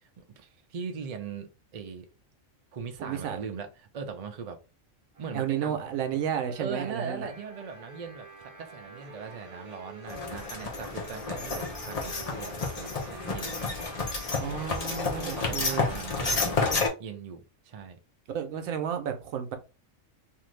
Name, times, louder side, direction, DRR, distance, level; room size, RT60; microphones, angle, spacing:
voice 1, 0.0-2.1 2.7-4.6 5.2-5.8 6.6-13.6 15.1-16.7 17.0-18.0, right 6 dB, 65° right, 0.3 m, -40 dB
voice 2, 3.0-3.4 5.3-7.3 14.4-15.9 18.3-19.6, right 8 dB, 85° right, 1.1 m, -32 dB
sound 1, 5.2-16.3, right 3 dB, 35° right, 0.6 m, -48 dB
sound 2, 10.1-16.9, left 3 dB, 40° left, 0.6 m, -30 dB
2.7 x 2.5 x 3.1 m
omnidirectional pair, 1.4 m